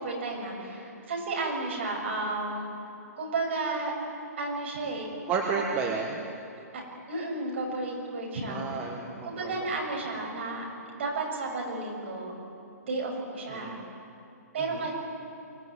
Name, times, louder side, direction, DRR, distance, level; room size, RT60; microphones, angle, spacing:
voice 1, 0.0-2.7 3.2-3.9 4.4-5.1 6.7-6.8 7.1-8.6 9.3-10.7 11.0-12.3 12.8-13.8 14.5-14.9, right 3 dB, 45° right, 0 dB, 7.0 m, -32 dB
voice 2, 5.3-6.2 8.5-9.7 13.5-13.8 14.6-14.9, right 5 dB, 15° right, 1 dB, 1.4 m, -32 dB
23.5 x 18.5 x 9.6 m, 2.7 s
hypercardioid pair, 170°, 9 cm